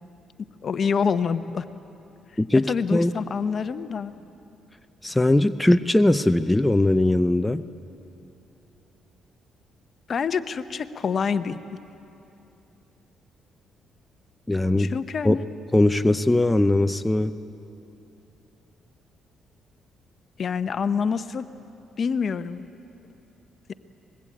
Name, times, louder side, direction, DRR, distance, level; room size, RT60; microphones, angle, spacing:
voice 1, 0.6-1.6 2.7-4.1 10.1-11.8 14.8-15.4 20.4-21.4 22.0-22.6, left 6 dB, 50° left, 11 dB, 0.9 m, -26 dB
voice 2, 2.4-3.1 5.0-7.6 14.5-14.9 15.2-15.4 15.7-17.3, left 1 dB, 10° left, 9 dB, 0.6 m, -20 dB
24.0 x 21.0 x 8.6 m, 2.9 s
cardioid pair, 90°, 0 cm